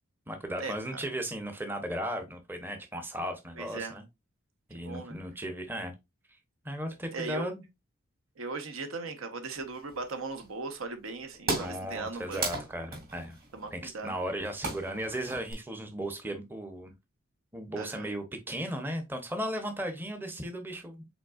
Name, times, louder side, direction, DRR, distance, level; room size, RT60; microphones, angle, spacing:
voice 1, 0.3-4.0 4.7-5.9 6.6-7.6 11.6-13.4 13.7-16.9 17.5-21.1, equal, 10° right, 0.7 m, -36 dB
voice 2, 3.6-3.9 4.8-5.2 7.1-7.5 8.4-12.5 13.5-14.1 17.8-18.1, right 3 dB, 70° right, 0.8 m, -38 dB
sound 1, 9.7-10.5 11.1-11.2 11.3-15.5, right 3 dB, 45° right, 2.4 m, -37 dB
5.2 x 4.0 x 2.3 m
head